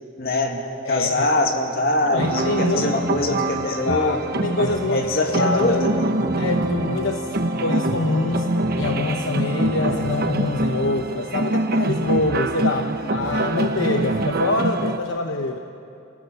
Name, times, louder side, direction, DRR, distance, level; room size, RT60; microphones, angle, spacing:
voice 1, 0.2-4.2 4.9-6.3 12.8-13.0, left 1 dB, 50° left, 3 dB, 2.2 m, -23 dB
voice 2, 0.8-1.3 2.0-3.0 3.6-5.8 6.4-8.5 8.8-15.6, left 2 dB, 75° left, 4 dB, 1.0 m, -25 dB
Wind instrument woodwind instrument, 1.9-10.1, left 3 dB, 15° right, 2.1 m, -36 dB
sound 1, 2.2-15.0, right 2 dB, 50° right, 0.9 m, -25 dB
29.0 x 16.5 x 6.9 m, 2.7 s
head